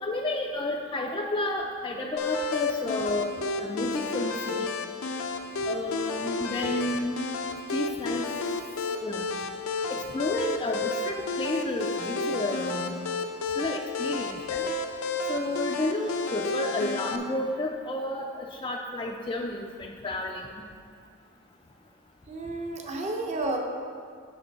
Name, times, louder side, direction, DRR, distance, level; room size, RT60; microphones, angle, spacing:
voice 1, 0.0-4.6 5.7-7.2 7.7-8.2 9.0-9.3 9.9-13.0 13.6-14.7 15.3-20.5, left 1 dB, 25° left, -1 dB, 0.4 m, -31 dB
sound 1, 2.2-17.2, left 3 dB, 85° left, 0.6 m, -31 dB
voice 2, 22.3-23.6, right 2 dB, 35° right, 2 dB, 0.8 m, -31 dB
8.4 x 6.1 x 4.0 m, 2.2 s
head